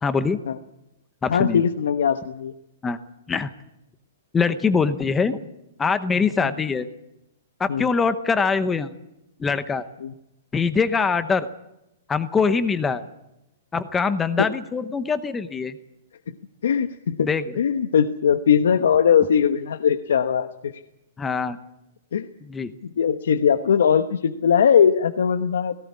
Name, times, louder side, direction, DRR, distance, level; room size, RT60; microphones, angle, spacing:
voice 1, 0.0-0.4 1.2-1.6 2.8-3.0 3.3-3.5 4.3-5.4 5.8-6.9 7.6-8.9 9.4-9.9 10.5-11.5 12.1-13.0 13.7-15.8 17.2-17.4 21.2-21.6 22.5-22.7, left 5 dB, 10° left, 11 dB, 0.8 m, -23 dB
voice 2, 1.3-2.5 6.4-6.5 7.7-7.9 10.0-10.1 16.6-17.3 17.6-20.8 22.1-22.3 22.8-25.8, left 7 dB, 85° left, 8 dB, 1.1 m, -20 dB
18.0 x 17.5 x 9.7 m, 0.88 s
hypercardioid pair, 170°, 0 cm